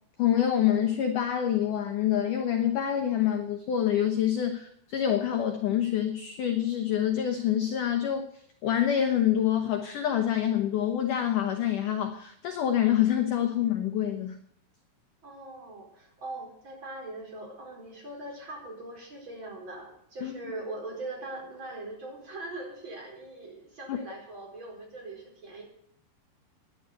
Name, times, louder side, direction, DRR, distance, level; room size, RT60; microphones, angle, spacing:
voice 1, 0.2-8.3 8.6-14.4 20.2-20.3 23.9-24.0, left 10 dB, 85° left, 6 dB, 1.8 m, -26 dB
voice 2, 15.2-25.6, right 2 dB, 25° right, 0 dB, 4.6 m, -41 dB
11.5 x 10.0 x 8.2 m, 0.68 s
omnidirectional pair, 5.2 m